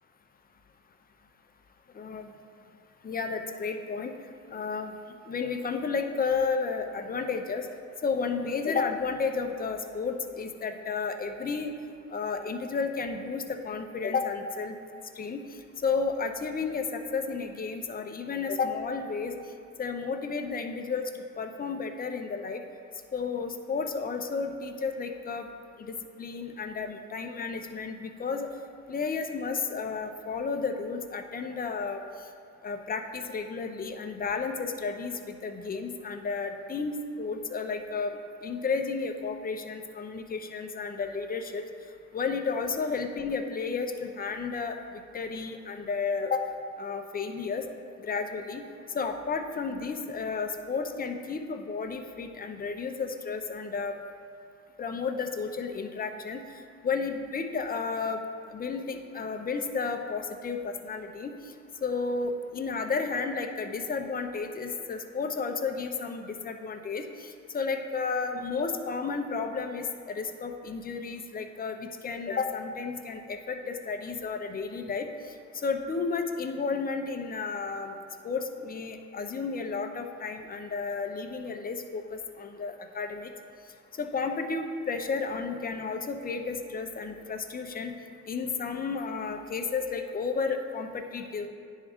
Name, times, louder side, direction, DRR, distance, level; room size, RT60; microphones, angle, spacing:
voice 1, 1.9-2.3 3.0-4.1 4.5-4.9 5.3-7.7 8.0-11.7 12.1-14.7 15.2-15.4 15.8-19.3 19.8-21.1 21.4-22.6 23.1-25.5 25.8-28.5 28.9-32.0 32.6-41.6 42.1-44.8 45.1-46.5 46.8-47.6 48.0-48.6 48.9-54.0 54.8-56.4 56.8-58.2 58.5-61.3 61.8-75.1 75.5-78.0 78.2-83.3 84.0-87.9 88.3-91.5, left 5 dB, 30° left, 5 dB, 0.6 m, -32 dB
9.7 x 3.6 x 3.5 m, 2.3 s
cardioid pair, 90°, 30 cm